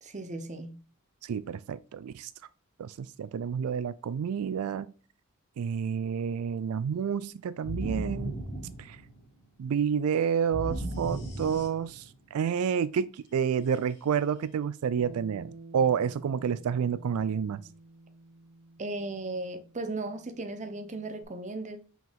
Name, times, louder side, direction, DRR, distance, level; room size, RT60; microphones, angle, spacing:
voice 1, 0.0-0.7 18.8-21.8, right 2 dB, 35° right, 0.8 m, -36 dB
voice 2, 1.2-2.3 2.8-4.9 5.6-8.3 8.8-9.0 9.6-17.6, right 7 dB, 85° right, 0.3 m, -29 dB
sound 1, 7.6-9.4 10.5-12.2, right 1 dB, 35° left, 2.9 m, -36 dB
Bass guitar, 15.0-21.2, right 3 dB, 15° right, 2.3 m, -51 dB
6.0 x 4.7 x 3.5 m
head